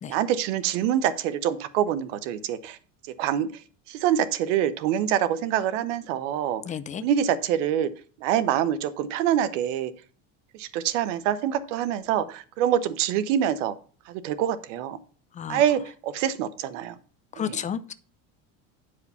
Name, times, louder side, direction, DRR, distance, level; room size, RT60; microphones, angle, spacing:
voice 1, 0.1-2.8 3.2-3.6 3.9-6.6 7.0-7.9 8.2-9.9 10.5-13.8 14.1-15.0 15.5-17.0 17.4-17.6, right 10 dB, 85° right, 1.0 m, -25 dB
voice 2, 6.7-7.0 15.4-15.6 17.4-17.9, left 8 dB, 20° left, 0.5 m, -31 dB
9.5 x 4.9 x 5.6 m
cardioid pair, 140°, 36 cm